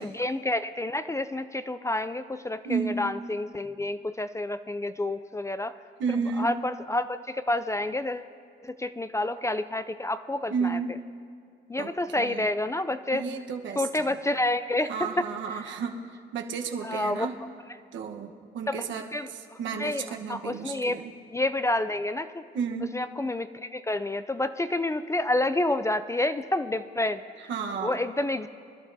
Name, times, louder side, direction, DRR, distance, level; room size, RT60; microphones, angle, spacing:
voice 1, 0.0-5.8 6.1-8.3 8.6-10.8 11.7-13.3 13.8-15.6 16.8-17.3 18.7-18.9 19.1-21.0 21.3-22.5 22.9-27.5 27.8-28.5, left 2 dB, 15° left, 12 dB, 0.4 m, -29 dB
voice 2, 2.6-3.0 6.0-6.5 10.5-10.9 11.8-12.5 13.1-13.9 14.9-16.0 16.3-17.3 17.9-21.0 22.5-23.0 27.5-28.0, right 5 dB, 70° right, 3 dB, 1.2 m, -32 dB
24.5 x 12.0 x 2.7 m, 2.3 s
cardioid pair, 90°, 20 cm